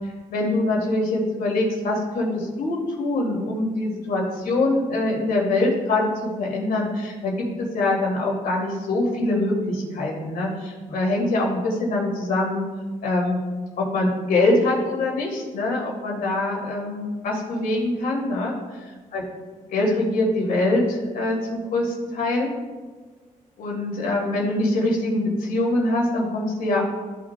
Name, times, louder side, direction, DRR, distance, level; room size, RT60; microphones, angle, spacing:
voice 1, 0.3-12.6 13.0-13.4 13.8-18.5 19.1-19.2 19.7-22.5 23.6-26.8, left 2 dB, 90° left, -1 dB, 2.3 m, -24 dB
14.0 x 6.2 x 2.2 m, 1.4 s
cardioid pair, 100°, 14 cm